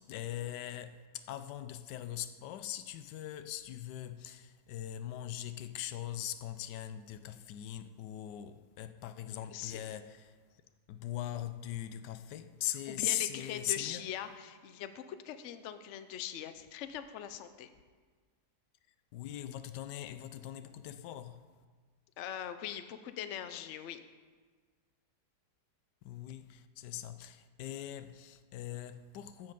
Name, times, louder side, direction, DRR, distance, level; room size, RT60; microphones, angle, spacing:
voice 1, 0.0-10.4 10.9-14.1 19.1-21.5 26.0-29.5, left 12 dB, 85° left, 1.2 m, -40 dB
voice 2, 9.5-9.8 12.9-17.7 22.2-24.0, left 10 dB, 65° left, 0.7 m, -41 dB
14.5 x 5.3 x 5.3 m
omnidirectional pair, 1.8 m